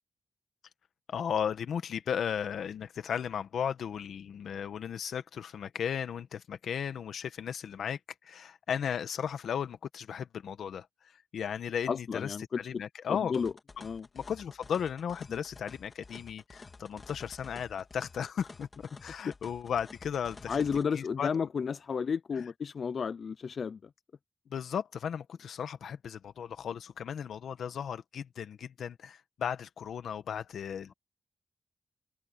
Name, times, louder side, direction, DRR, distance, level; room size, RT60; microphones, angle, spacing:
voice 1, 1.1-10.9 11.3-13.3 14.1-18.7 19.0-20.6 20.9-21.3 24.5-30.9, left 8 dB, 85° left, 1.4 m, -35 dB
voice 2, 11.9-12.8 13.1-13.5 13.8-14.1 15.3-15.4 20.5-23.9, left 6 dB, 60° left, 0.5 m, -32 dB
sound 1, 13.3-20.8, left 3 dB, 40° left, 3.3 m, -51 dB
cardioid pair, 85°, 0 cm